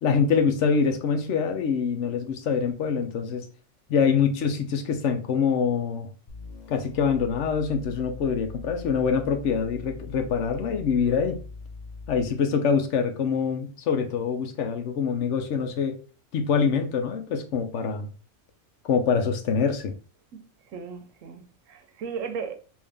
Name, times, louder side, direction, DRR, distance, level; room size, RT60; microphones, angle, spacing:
voice 1, 0.0-3.5 3.9-6.1 6.7-11.4 12.1-16.0 16.3-18.1 18.8-19.9, left 6 dB, 70° left, 1.0 m, -25 dB
sound 1, 6.3-12.4, left 3 dB, 55° left, 0.5 m, -41 dB
voice 2, 20.3-22.5, right 6 dB, 85° right, 1.0 m, -36 dB
3.5 x 2.6 x 3.4 m
omnidirectional pair, 1.3 m